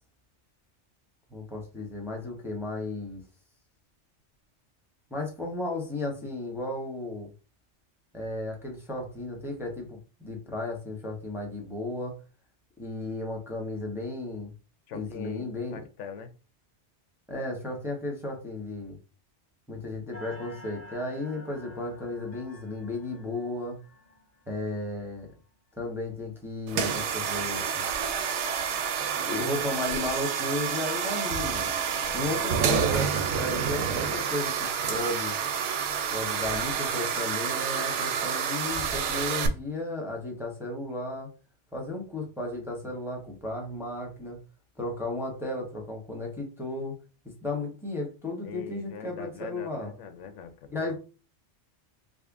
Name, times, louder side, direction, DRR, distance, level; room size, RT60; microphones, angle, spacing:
voice 1, 1.3-3.2 5.1-7.3 8.1-12.2 12.8-14.5 14.9-15.8 17.3-19.0 19.7-23.8 24.5-25.3 25.8-27.8 29.2-31.7 32.1-35.3 36.1-41.3 41.7-44.4 44.8-47.0 47.2-49.9 50.7-50.9, left 2 dB, ahead, 0 dB, 0.8 m, -34 dB
voice 2, 14.9-16.3 31.9-32.9 48.4-50.9, left 6 dB, 85° left, 8 dB, 1.0 m, -42 dB
sound 1, 20.1-25.8, left 1 dB, 40° left, 1.3 m, -50 dB
sound 2, 26.7-39.5, right 7 dB, 80° right, 0.9 m, -29 dB
3.8 x 2.1 x 3.5 m, 0.33 s
omnidirectional pair, 1.2 m